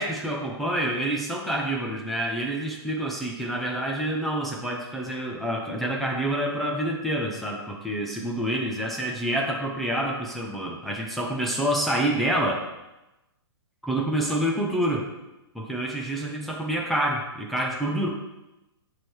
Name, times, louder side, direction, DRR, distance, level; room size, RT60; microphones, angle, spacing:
voice 1, 0.0-12.6 13.8-15.1 15.5-18.1, right 1 dB, ahead, -3 dB, 0.3 m, -27 dB
9.4 x 3.2 x 4.5 m, 0.99 s
hypercardioid pair, 165°, 14 cm